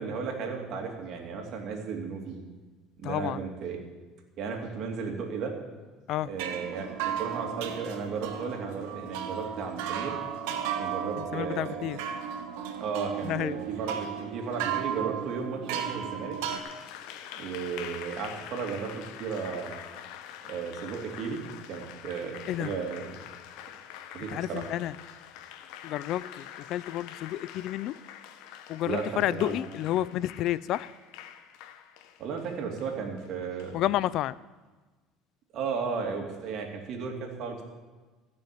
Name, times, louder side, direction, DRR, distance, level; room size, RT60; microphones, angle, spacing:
voice 1, 0.0-2.3 3.0-3.8 4.4-5.5 6.2-6.9 7.2-10.2 10.8-11.8 12.8-16.4 17.3-19.8 20.4-23.0 24.1-24.6 28.8-29.6 32.2-33.8 35.5-37.6, right 5 dB, 55° right, 2 dB, 2.6 m, -34 dB
voice 2, 3.0-3.4 6.1-6.3 11.2-12.0 13.2-13.6 22.5-22.7 24.3-24.9 25.8-28.0 28.7-30.9 33.7-34.4, left 13 dB, 60° left, 19 dB, 0.3 m, -30 dB
sound 1, 6.3-16.6, right 8 dB, 85° right, 1.2 m, -34 dB
Applause, 16.3-34.1, left 10 dB, 75° left, 0.8 m, -45 dB
15.0 x 6.4 x 8.5 m, 1.3 s
supercardioid pair, 115°, 0 cm